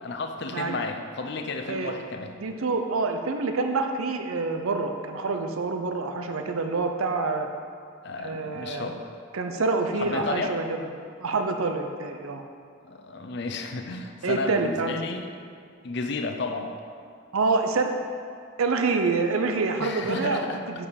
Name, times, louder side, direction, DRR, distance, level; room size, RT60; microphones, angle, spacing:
voice 1, 0.0-2.4 8.0-9.1 10.0-10.5 12.8-15.3 15.8-16.7 19.8-20.6, left 3 dB, 55° left, 5 dB, 0.5 m, -32 dB
voice 2, 1.7-2.0 2.4-7.5 8.2-8.9 9.3-10.8 11.2-12.4 14.2-15.0 17.3-18.0 18.6-20.9, right 3 dB, 85° right, 5 dB, 0.6 m, -27 dB
7.2 x 4.9 x 5.1 m, 2.3 s
head